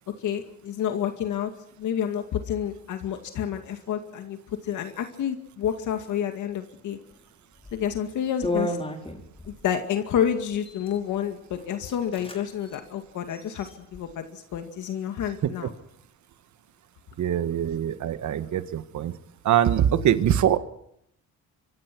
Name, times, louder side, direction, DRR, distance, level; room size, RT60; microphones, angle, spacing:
voice 1, 0.2-1.5 1.8-4.4 4.6-7.0 7.7-8.8 9.6-15.7, left 9 dB, 75° left, 6 dB, 2.2 m, -29 dB
sound 1, 7.6-7.8 8.4-9.6 10.5-11.0 11.5-11.6 11.9-12.4 12.7-12.8 13.3-14.0, left 1 dB, 20° left, 5.2 m, -32 dB
voice 2, 17.2-19.1 19.4-20.6, right 10 dB, 70° right, 12 dB, 1.6 m, -23 dB
25.5 x 23.0 x 6.2 m, 0.74 s
cardioid pair, 90°, 30 cm